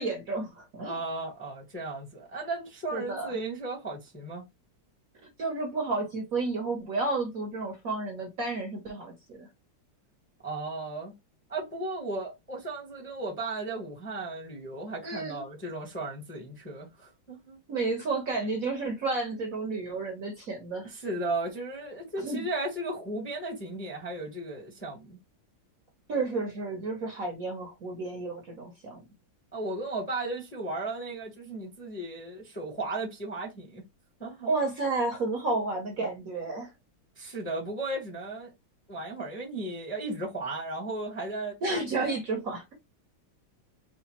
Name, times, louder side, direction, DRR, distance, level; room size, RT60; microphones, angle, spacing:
voice 1, 0.0-1.0 2.9-3.3 5.4-9.5 15.0-15.4 17.7-20.9 22.2-22.5 26.1-29.0 34.5-36.7 41.6-42.7, right 3 dB, 55° right, 1.1 m, -31 dB
voice 2, 0.8-4.4 10.4-11.1 11.5-17.6 20.8-25.2 29.5-33.8 34.2-34.5 37.2-38.5 38.9-42.2, right 2 dB, 10° left, 0.9 m, -35 dB
4.9 x 2.5 x 2.9 m
omnidirectional pair, 2.2 m